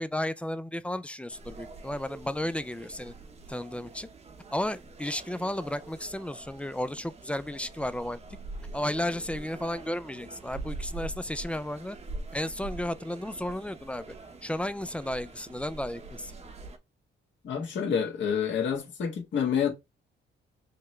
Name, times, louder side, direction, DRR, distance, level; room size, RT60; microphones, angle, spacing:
voice 1, 0.0-3.1 3.5-4.1 4.5-8.2 8.7-12.0 12.3-14.1 14.4-16.3, left 1 dB, 5° left, 0.3 m, -33 dB
sound 1, 1.3-16.8, right 2 dB, 35° right, 0.9 m, -44 dB
voice 2, 17.4-19.7, left 7 dB, 65° left, 1.6 m, -28 dB
5.7 x 2.2 x 3.1 m
cardioid pair, 90°, 20 cm